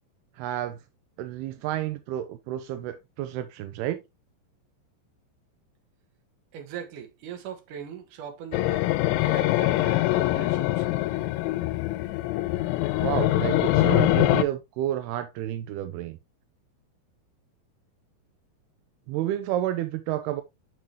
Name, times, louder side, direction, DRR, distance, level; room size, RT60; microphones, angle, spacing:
voice 1, 0.4-0.8 1.2-4.0 13.0-16.2 19.1-20.4, right 12 dB, 85° right, 2.3 m, -30 dB
voice 2, 6.5-8.8 9.1-10.9, right 8 dB, 60° right, 2.5 m, -40 dB
sound 1, 8.5-14.4, left 17 dB, 90° left, 3.0 m, -23 dB
7.8 x 6.0 x 3.0 m
omnidirectional pair, 5.3 m